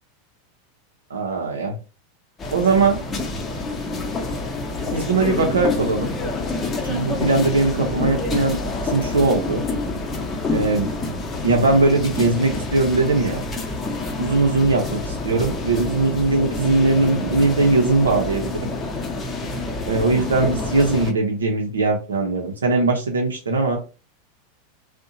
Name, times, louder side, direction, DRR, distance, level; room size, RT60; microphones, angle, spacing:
voice 1, 1.1-1.7 2.5-3.0 4.9-6.1 6.8-8.6 8.8-9.6 10.5-10.9 11.4-13.4 14.2-18.7 19.8-23.8, right 3 dB, 90° right, 0 dB, 0.5 m, -20 dB
sound 1, 2.4-21.1, left 2 dB, 25° left, 0.7 m, -27 dB
2.6 x 2.1 x 2.5 m, 0.33 s
hypercardioid pair, 100°, 0 cm